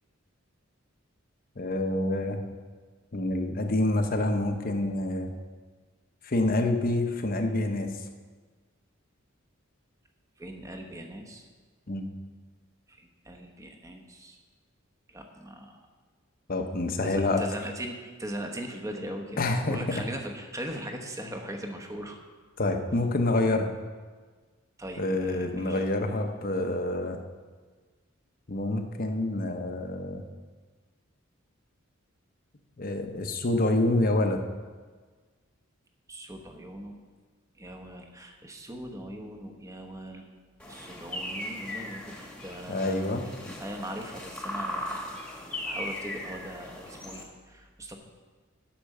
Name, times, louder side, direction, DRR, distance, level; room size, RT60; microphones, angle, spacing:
voice 1, 1.6-2.4 3.1-5.3 6.2-7.9 11.9-12.1 16.5-17.4 19.4-20.0 22.6-23.7 25.0-27.2 28.5-30.2 32.8-34.4 42.7-43.3, left 2 dB, 45° left, 5 dB, 0.9 m, -27 dB
voice 2, 10.4-11.5 13.0-14.4 15.1-15.8 17.0-22.2 24.8-25.9 36.1-36.9 37.6-40.3 40.7-45.0 45.3-48.0, right 1 dB, 15° right, 3 dB, 1.0 m, -40 dB
sound 1, 40.6-47.2, left 1 dB, 5° left, 1.4 m, -38 dB
10.0 x 6.0 x 6.6 m, 1.5 s
head